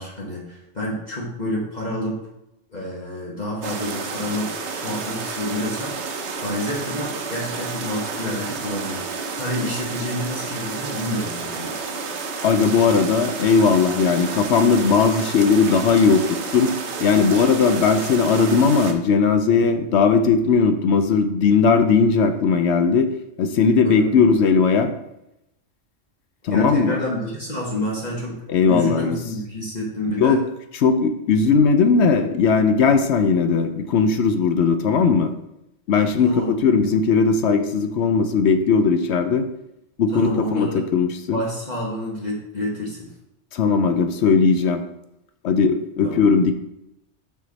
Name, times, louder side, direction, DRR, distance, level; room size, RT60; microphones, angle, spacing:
voice 1, 0.0-2.2 2.7-9.0 9.4-11.7 23.8-24.2 26.5-30.4 36.2-36.5 40.1-40.8 41.3-43.1 46.0-46.2, left 1 dB, 35° left, -5 dB, 1.4 m, -29 dB
sound 1, 3.6-18.9, right 4 dB, 70° right, 1.1 m, -31 dB
voice 2, 12.4-16.7 17.0-23.1 23.4-24.9 26.4-27.0 28.5-29.2 30.2-30.4 30.7-35.3 35.9-39.5 40.0-41.4 43.5-44.8 45.4-46.5, left 5 dB, 70° left, 8 dB, 0.8 m, -18 dB
6.0 x 5.7 x 4.0 m, 0.86 s
omnidirectional pair, 1.3 m